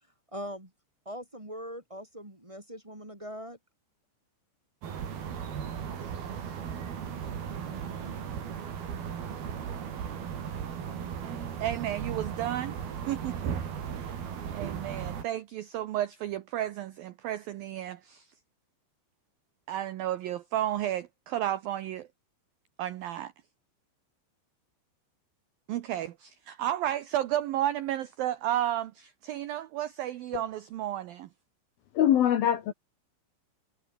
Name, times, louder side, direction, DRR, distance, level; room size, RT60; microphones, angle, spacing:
voice 1, 0.3-0.7 1.0-3.6 8.0-8.2, equal, 10° right, 2.3 m, -41 dB
sound 1, 4.8-15.2, right 7 dB, 55° right, 4.8 m, -36 dB
voice 2, 11.6-12.8 13.1-13.5 14.0-14.1 14.5-18.3 19.7-22.1 22.8-23.3 25.7-31.3, right 12 dB, 80° right, 2.0 m, -32 dB
voice 3, 31.9-32.7, left 10 dB, 65° left, 2.8 m, -23 dB
omnidirectional pair, 5.6 m